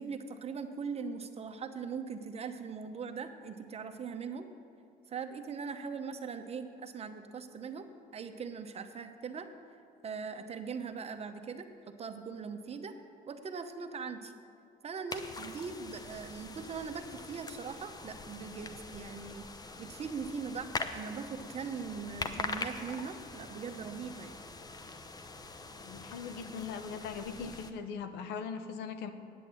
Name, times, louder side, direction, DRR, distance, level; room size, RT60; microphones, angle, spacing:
voice 1, 0.0-4.5 5.1-9.5 10.0-11.7 12.0-12.9 13.3-14.3 14.8-19.5 19.8-24.4, right 5 dB, 35° right, 7 dB, 0.9 m, -40 dB
sound 1, 15.1-27.7, left 3 dB, 20° left, 0.8 m, -43 dB
voice 2, 25.8-29.1, left 6 dB, 85° left, 9 dB, 0.9 m, -40 dB
9.3 x 8.1 x 8.6 m, 2.6 s
cardioid pair, 110°, 17 cm